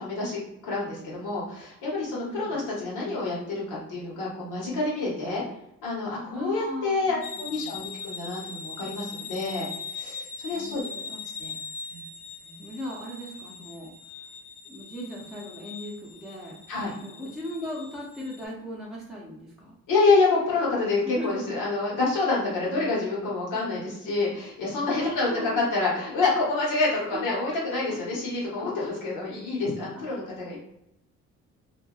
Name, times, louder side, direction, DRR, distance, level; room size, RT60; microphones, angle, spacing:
voice 1, 0.0-5.4 5.8-9.7 9.9-10.8 11.4-11.5 11.9-12.0 16.7-16.9 19.9-30.6, left 3 dB, 85° left, -5 dB, 1.2 m, -27 dB
voice 2, 2.1-2.6 6.3-7.9 10.5-11.2 12.4-14.3 14.6-16.6 17.0-19.8 21.0-21.5 22.4-22.5 24.8-25.7 27.1-27.6 30.1-30.2, left 1 dB, ahead, -5 dB, 0.6 m, -38 dB
sound 1, 7.2-18.4, left 5 dB, 50° left, 0.5 m, -41 dB
2.6 x 2.2 x 2.3 m, 0.82 s
cardioid pair, 90°, 30 cm